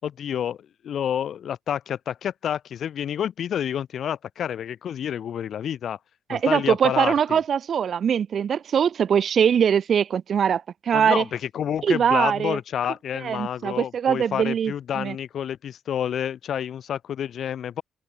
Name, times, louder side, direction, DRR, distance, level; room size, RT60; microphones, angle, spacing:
voice 1, 0.0-6.0 6.3-7.4 10.9-17.8, left 9 dB, 55° left, 5.5 m, -29 dB
voice 2, 6.3-11.2 11.8-12.6 13.2-15.2, right 8 dB, 45° right, 7.4 m, -22 dB
open air
cardioid pair, 130°, 0 cm